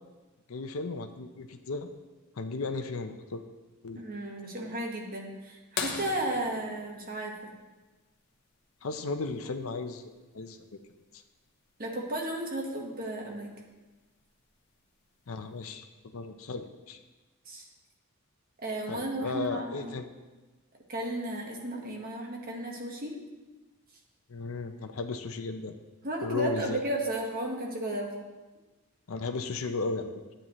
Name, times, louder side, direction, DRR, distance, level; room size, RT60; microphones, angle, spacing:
voice 1, 0.5-1.9 2.4-3.4 3.8-4.0 8.8-10.8 15.3-15.9 16.1-17.0 18.9-20.1 24.3-25.7 26.2-26.8 29.1-30.2, left 3 dB, 75° left, 6 dB, 0.7 m, -35 dB
voice 2, 3.9-7.5 11.8-13.5 17.5-17.6 18.6-19.9 20.9-23.2 26.0-28.2, right 1 dB, 45° right, 0 dB, 1.5 m, -34 dB
sound 1, 5.8-8.2 10.1-10.2 12.5-12.6 14.3-14.5 15.3-15.4, left 5 dB, 50° left, 1.0 m, -38 dB
11.0 x 8.7 x 3.1 m, 1.2 s
head